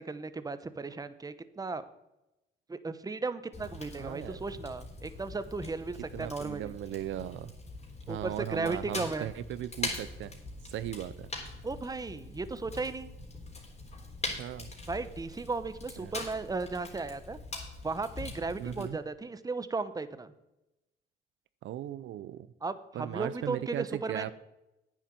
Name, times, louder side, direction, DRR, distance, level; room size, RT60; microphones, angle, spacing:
voice 1, 0.0-1.8 2.7-6.7 8.1-9.3 11.6-13.1 14.9-17.4 17.8-20.3 22.6-24.3, right 3 dB, 20° right, 12 dB, 0.9 m, -35 dB
Fire, 3.5-18.9, left 2 dB, 35° left, 3.6 m, -43 dB
voice 2, 4.0-4.4 6.1-7.5 8.1-10.3 10.6-11.3 14.4-14.7 16.0-16.1 18.6-19.0 21.6-22.5 22.9-24.3, right 12 dB, 75° right, 15 dB, 0.6 m, -37 dB
9.5 x 7.4 x 7.5 m, 0.92 s
cardioid pair, 90°, 20 cm